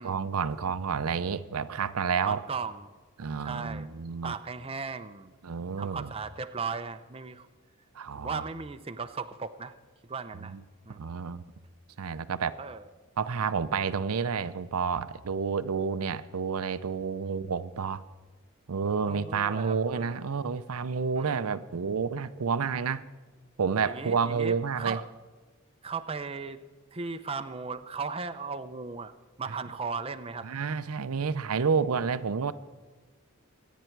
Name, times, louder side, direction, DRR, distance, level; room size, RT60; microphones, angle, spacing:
voice 1, 0.0-2.4 3.2-4.4 5.4-6.1 7.9-8.4 10.4-10.6 10.9-11.4 12.0-12.6 13.2-18.0 18.7-23.1 23.6-25.0 29.5-29.6 30.4-32.5, right 5 dB, 75° right, 13 dB, 0.6 m, -30 dB
voice 2, 2.2-2.9 3.4-3.9 4.2-5.3 5.8-7.5 8.1-9.7 10.1-10.5 10.9-11.0 12.6-12.8 19.1-20.2 21.2-21.4 23.8-25.0 25.8-26.6 26.9-29.1 29.4-30.5, right 4 dB, 25° right, 8 dB, 0.6 m, -37 dB
24.5 x 9.3 x 4.6 m, 1.4 s
head